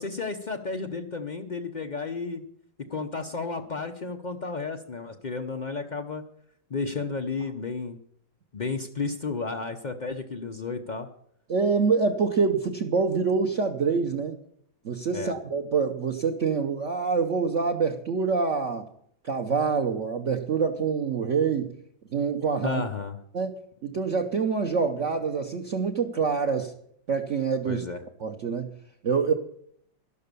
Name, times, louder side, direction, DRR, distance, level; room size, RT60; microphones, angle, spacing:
voice 1, 0.0-2.4 2.9-6.2 6.7-8.0 8.5-11.1 15.1-15.3 22.6-23.2 27.6-28.0, left 4 dB, 50° left, 4 dB, 0.5 m, -32 dB
voice 2, 11.5-14.4 14.8-18.9 19.2-21.7 22.1-22.8 23.3-23.5 23.8-26.7 27.1-27.8 28.2-28.7 29.0-29.3, right 5 dB, 50° right, 4 dB, 1.1 m, -26 dB
12.5 x 12.0 x 6.8 m, 0.68 s
omnidirectional pair, 2.1 m